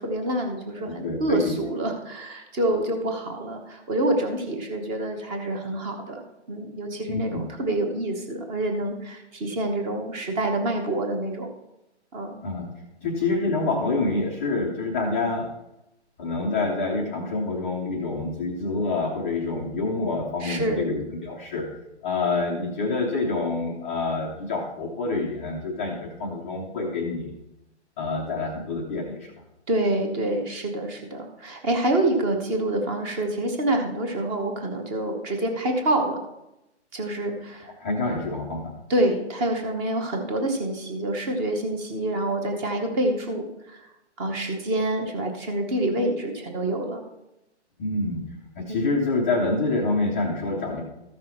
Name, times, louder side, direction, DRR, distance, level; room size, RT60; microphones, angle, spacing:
voice 1, 0.0-6.2 6.5-11.5 12.1-12.4 20.4-20.9 29.7-36.2 36.9-37.7 38.9-43.9 44.2-47.0 48.7-48.8, right 1 dB, 15° right, 3 dB, 0.9 m, -27 dB
voice 2, 0.8-1.6 7.1-7.4 12.4-12.7 13.0-15.5 16.2-21.7 22.0-27.3 28.0-29.3 37.6-38.8 47.8-48.2 48.6-50.8, left 3 dB, 10° left, -3 dB, 0.6 m, -27 dB
13.5 x 6.0 x 4.4 m, 0.91 s
hypercardioid pair, 150°, 35 cm